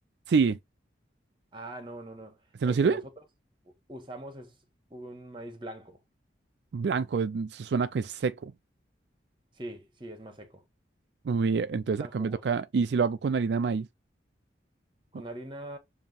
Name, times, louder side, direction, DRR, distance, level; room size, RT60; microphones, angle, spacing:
voice 1, 0.3-0.6 2.6-3.0 6.7-8.5 11.2-13.9, right 5 dB, 70° right, 0.4 m, -27 dB
voice 2, 1.5-2.4 2.6-3.0 3.6-4.6 4.9-6.0 9.6-10.6 12.0-12.4 15.1-15.8, right 1 dB, 25° right, 1.5 m, -42 dB
7.1 x 2.8 x 5.4 m
head